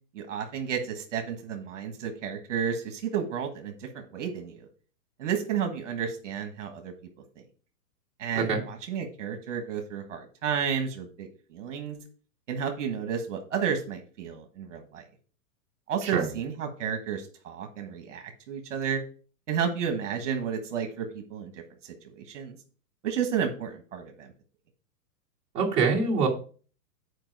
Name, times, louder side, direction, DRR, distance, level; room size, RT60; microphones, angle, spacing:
voice 1, 0.1-4.7 5.2-6.9 8.2-12.0 12.5-15.0 15.9-19.0 19.5-22.6 23.0-24.3, right 7 dB, 45° right, 5 dB, 1.4 m, -32 dB
voice 2, 25.5-26.3, right 4 dB, 10° right, -6 dB, 1.6 m, -24 dB
9.0 x 4.8 x 4.7 m, 0.40 s
hypercardioid pair, 180°, 49 cm